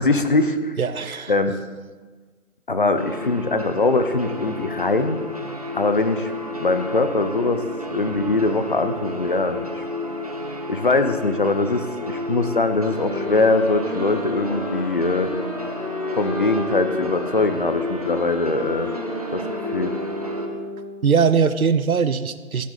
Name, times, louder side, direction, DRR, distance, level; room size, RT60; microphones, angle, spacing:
voice 1, 0.0-0.8 1.3-1.5 2.7-5.2 5.7-6.3 6.6-9.8 10.7-15.3 16.1-18.9 19.3-19.9, left 3 dB, 40° left, 9 dB, 0.7 m, -22 dB
voice 2, 0.8-1.3 21.0-22.7, right 6 dB, 85° right, 13 dB, 0.8 m, -20 dB
sound 1, 3.0-20.5, left 2 dB, 25° right, 0.7 m, -31 dB
sound 2, 12.9-21.1, equal, 10° right, 2.2 m, -33 dB
15.5 x 9.5 x 4.0 m, 1.4 s
figure-of-eight pair, 165°, 42 cm